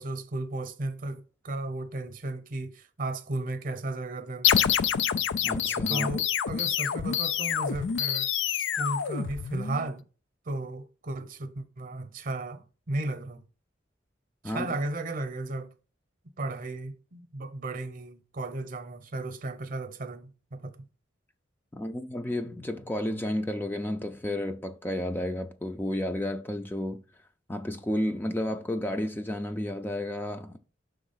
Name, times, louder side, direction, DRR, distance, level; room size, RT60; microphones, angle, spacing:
voice 1, 0.0-4.6 5.9-8.3 8.6-10.0 10.4-13.4 14.4-15.7 16.4-20.8, right 2 dB, 50° right, 0.8 m, -35 dB
sound 1, 4.4-9.9, left 9 dB, 85° left, 0.4 m, -27 dB
voice 2, 5.4-6.1 14.4-14.8 21.7-27.0 27.5-30.6, left 1 dB, 10° left, 0.4 m, -32 dB
6.1 x 3.6 x 5.6 m
head